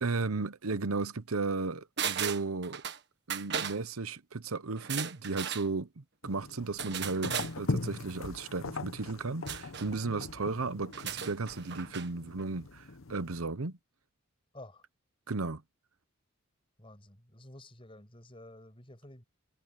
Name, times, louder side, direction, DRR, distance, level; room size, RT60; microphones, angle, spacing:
voice 1, 0.0-2.8 3.3-13.8 15.3-15.6, right 3 dB, 85° right, 0.9 m, -35 dB
sound 1, 2.0-3.0 3.3-3.8 4.8-5.7 6.8-7.5 9.5-9.9 10.9-12.1 12.4-12.5, right 8 dB, 55° right, 1.5 m, -36 dB
sound 2, 6.2-13.4, left 3 dB, 70° left, 0.9 m, -40 dB
voice 2, 16.8-19.2, left 1 dB, 25° left, 5.9 m, -51 dB
head